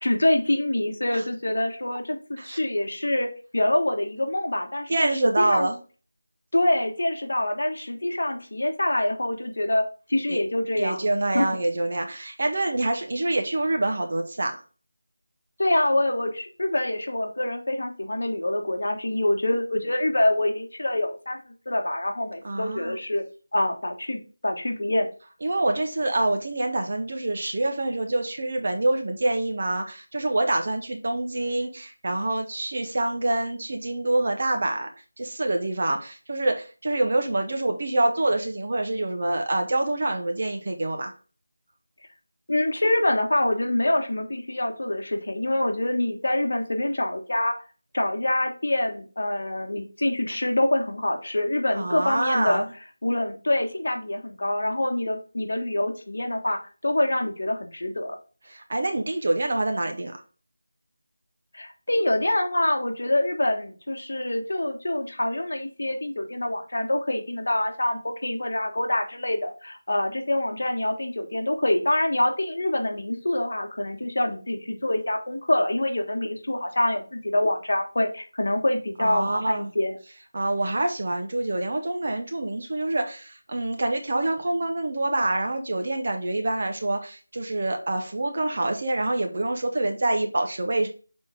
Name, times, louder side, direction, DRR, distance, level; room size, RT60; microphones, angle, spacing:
voice 1, 0.0-5.7 6.5-9.8 10.1-11.0 11.3-11.5 15.6-21.4 21.6-23.2 23.5-25.1 42.5-47.5 47.9-52.6 53.0-58.2 61.5-80.0, left 1 dB, 55° left, 3 dB, 1.4 m, -25 dB
voice 2, 4.9-5.8 10.3-10.4 10.8-14.5 22.4-23.0 25.4-34.9 35.2-41.1 51.7-52.7 58.5-60.2 79.0-79.7 80.3-90.9, right 2 dB, 35° right, 4 dB, 0.9 m, -26 dB
6.8 x 4.1 x 3.6 m, 0.36 s
figure-of-eight pair, 180°, 0 cm